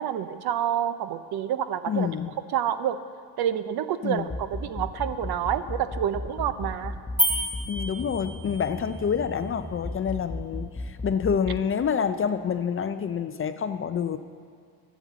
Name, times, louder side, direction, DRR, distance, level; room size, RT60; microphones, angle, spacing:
voice 1, 0.0-2.1 2.5-3.0 3.4-6.9, right 10 dB, 60° right, 12 dB, 0.7 m, -28 dB
voice 2, 1.9-2.3 4.0-4.3 7.7-14.2, left 7 dB, 30° left, 10 dB, 0.4 m, -27 dB
sound 1, 4.2-11.6, left 1 dB, 15° left, 0.9 m, -34 dB
sound 2, 7.2-8.7, equal, 5° right, 2.0 m, -28 dB
10.5 x 7.3 x 7.4 m, 2.2 s
cardioid pair, 95°, 44 cm